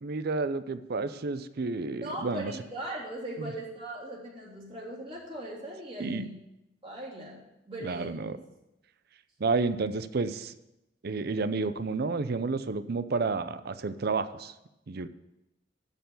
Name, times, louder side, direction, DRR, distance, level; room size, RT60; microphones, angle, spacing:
voice 1, 0.0-2.5 3.4-3.5 6.0-6.2 7.8-8.4 9.4-10.5 11.0-14.5 14.9-15.1, right 4 dB, 55° right, 12 dB, 0.6 m, -30 dB
voice 2, 2.0-6.4 6.8-7.4 7.6-8.2, right 1 dB, 30° right, -5 dB, 3.4 m, -39 dB
12.5 x 4.6 x 7.6 m, 0.92 s
head